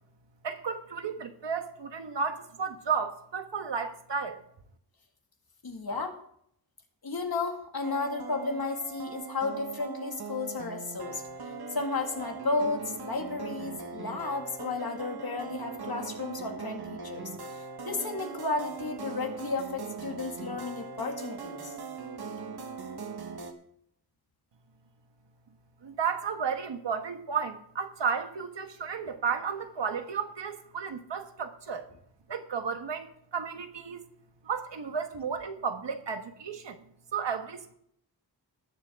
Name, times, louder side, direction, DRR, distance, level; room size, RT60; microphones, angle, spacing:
voice 1, 0.4-4.4 25.8-31.9 32.3-34.0 34.4-36.8 37.1-37.7, right 6 dB, 80° right, 7 dB, 1.4 m, -33 dB
voice 2, 5.6-6.2 7.0-11.2 11.7-17.3 17.8-21.7, left 3 dB, 55° left, 3 dB, 2.2 m, -33 dB
sound 1, 7.8-23.5, right 5 dB, 60° right, 1.6 m, -40 dB
19.5 x 7.3 x 3.6 m, 0.68 s
wide cardioid pair, 110°, 42 cm